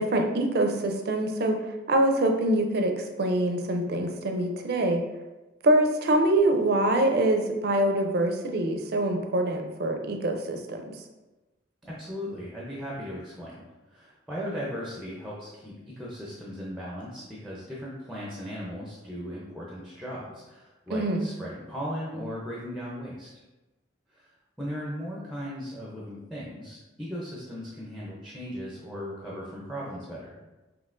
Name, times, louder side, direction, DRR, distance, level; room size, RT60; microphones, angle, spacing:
voice 1, 0.0-1.6 1.9-5.0 5.6-11.0 20.9-21.3, right 1 dB, 55° right, 4 dB, 0.5 m, -24 dB
voice 2, 11.8-13.6 13.9-23.3 24.1-24.3 24.6-30.4, equal, ahead, -5 dB, 0.5 m, -37 dB
5.4 x 2.9 x 2.5 m, 1.1 s
head